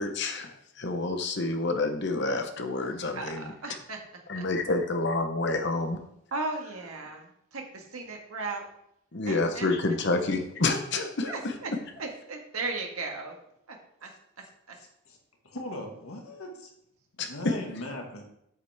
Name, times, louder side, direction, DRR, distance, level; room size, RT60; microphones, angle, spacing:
voice 1, 0.0-3.8 4.3-6.0 9.1-11.8 17.2-17.6, left 3 dB, 55° left, 6 dB, 1.0 m, -29 dB
voice 2, 3.1-4.0 4.3-4.4 6.3-8.7 9.3-9.7 11.2-13.4 13.7-14.1 14.7-14.8, right 3 dB, 85° right, 2 dB, 1.7 m, -36 dB
voice 3, 14.7-15.2 15.4-16.7 17.1-18.3, left 1 dB, 85° left, 2 dB, 1.8 m, -39 dB
8.1 x 8.1 x 3.5 m, 0.74 s
head